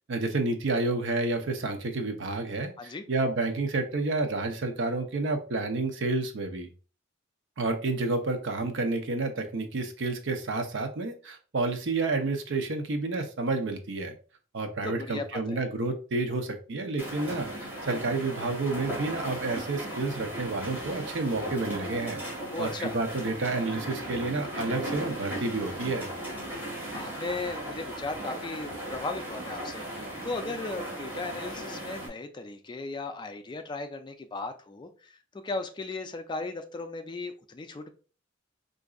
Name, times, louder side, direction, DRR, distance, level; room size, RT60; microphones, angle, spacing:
voice 1, 0.0-6.7 7.6-14.1 14.5-22.2 22.6-26.1, right 3 dB, 65° right, 6 dB, 0.6 m, -30 dB
voice 2, 14.8-15.6 22.5-22.9 26.9-37.9, left 3 dB, 25° left, 7 dB, 0.4 m, -36 dB
sound 1, 17.0-32.1, right 1 dB, 10° right, 1.7 m, -37 dB
4.8 x 2.6 x 2.3 m, 0.37 s
head